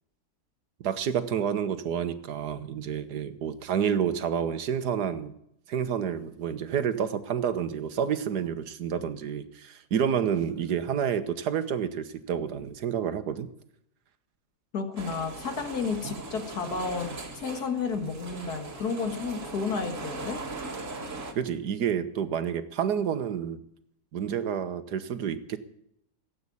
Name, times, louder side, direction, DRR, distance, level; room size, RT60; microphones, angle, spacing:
voice 1, 0.8-5.3 5.7-13.5 16.0-16.1 18.0-18.1 21.3-23.6 24.1-25.6, right 8 dB, 85° right, 11 dB, 1.7 m, -29 dB
voice 2, 14.7-20.4, left 5 dB, 75° left, 7 dB, 2.2 m, -32 dB
sound 1, 15.0-21.3, right 3 dB, 50° right, 2.1 m, -39 dB
16.5 x 8.7 x 8.4 m, 0.75 s
omnidirectional pair, 1.7 m